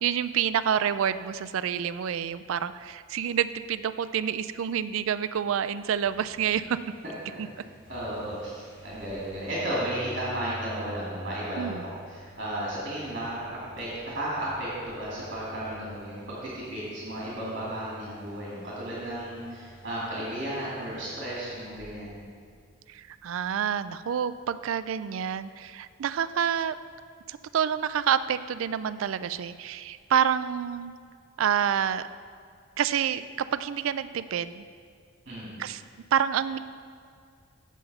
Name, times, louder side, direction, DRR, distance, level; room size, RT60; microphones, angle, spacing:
voice 1, 0.0-6.8 7.4-7.5 11.6-11.8 22.9-26.7 27.3-30.9 31.4-32.0 32.8-33.2 33.5-34.6 35.6-35.8 36.1-36.6, right 8 dB, 70° right, 14 dB, 0.3 m, -28 dB
sound 1, 5.8-23.2, right 1 dB, 45° left, 1.5 m, -49 dB
voice 2, 7.9-8.5 8.8-13.9 14.1-22.2 35.3-35.6, right 1 dB, 45° right, -7 dB, 2.3 m, -34 dB
7.7 x 7.2 x 5.4 m, 2.2 s
head